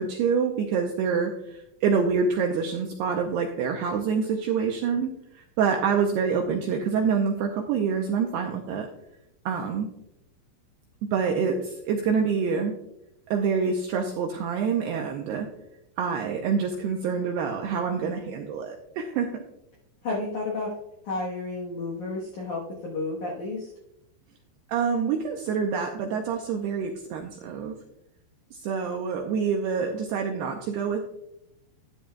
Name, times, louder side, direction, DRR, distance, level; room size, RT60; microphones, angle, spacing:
voice 1, 0.0-8.9 9.5-9.9 11.1-12.7 13.3-15.5 16.0-19.4 24.7-27.7 28.5-31.1, right 6 dB, 85° right, 2 dB, 2.3 m, -26 dB
voice 2, 20.0-20.7 21.0-23.7, left 3 dB, 70° left, -4 dB, 1.8 m, -31 dB
12.5 x 10.0 x 2.3 m, 0.82 s
omnidirectional pair, 5.6 m